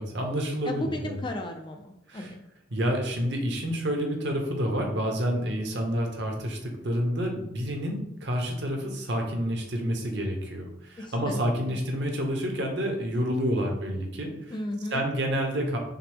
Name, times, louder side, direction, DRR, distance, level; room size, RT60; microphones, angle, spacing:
voice 1, 0.0-1.2 2.1-2.3 2.7-14.5 14.9-15.8, equal, 60° right, 2 dB, 0.8 m, -29 dB
voice 2, 0.6-2.4 11.0-11.4 11.7-11.8 14.5-15.0, left 1 dB, 25° left, 4 dB, 0.3 m, -35 dB
5.7 x 2.0 x 3.4 m, 0.83 s
head